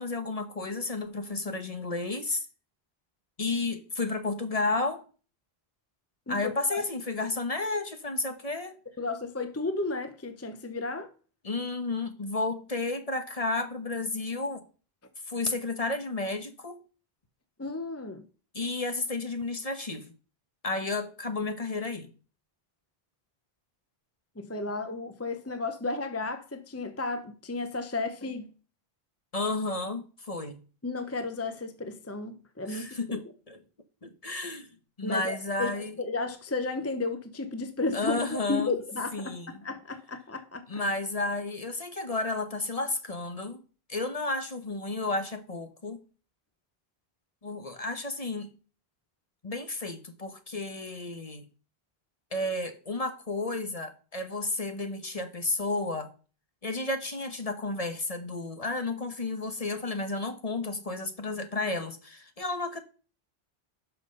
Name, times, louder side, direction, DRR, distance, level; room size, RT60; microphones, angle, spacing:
voice 1, 0.0-2.4 3.4-5.0 6.3-8.7 11.4-14.6 15.3-16.8 18.5-20.1 20.6-22.1 29.3-30.6 32.6-33.6 34.0-34.7 35.0-35.9 37.9-38.8 39.1-39.5 40.7-43.6 43.9-46.0 47.4-48.5 49.4-51.4 52.3-56.1 56.6-62.8, left 2 dB, 35° left, 1.2 m, -32 dB
voice 2, 6.3-6.8 9.0-11.1 17.6-18.2 24.4-28.5 30.8-33.2 35.0-40.6, left 3 dB, 15° left, 0.8 m, -33 dB
12.0 x 5.9 x 5.5 m
omnidirectional pair, 1.0 m